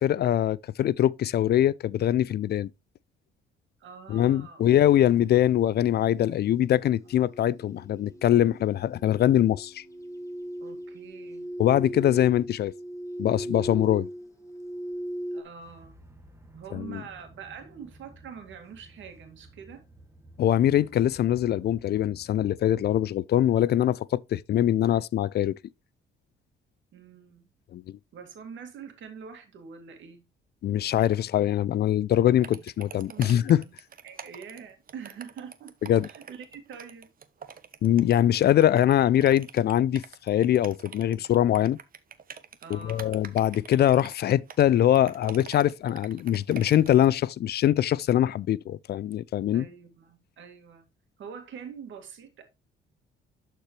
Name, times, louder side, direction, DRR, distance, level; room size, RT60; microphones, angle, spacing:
voice 1, 0.0-2.7 4.1-9.8 11.6-12.7 13.2-14.1 16.7-17.0 20.4-25.5 27.7-28.0 30.6-33.6 35.9-36.1 37.8-41.8 42.7-49.7, left 11 dB, 55° left, 0.4 m, -23 dB
voice 2, 3.8-4.7 5.0-5.1 7.2-7.3 10.6-11.6 15.3-16.1 16.5-19.8 24.8-25.0 26.9-27.5 28.1-30.2 32.5-32.6 33.1-33.7 34.0-37.1 42.6-43.2 49.5-50.9 51.2-52.4, right 6 dB, 75° right, 2.2 m, -45 dB
sound 1, 4.6-15.4, equal, 15° left, 1.4 m, -39 dB
sound 2, 13.7-23.1, right 1 dB, 15° right, 1.4 m, -53 dB
Continuous scrolling on an old mouse, 32.4-47.1, right 7 dB, 45° right, 1.0 m, -45 dB
11.5 x 4.5 x 3.1 m
cardioid pair, 90°, 20 cm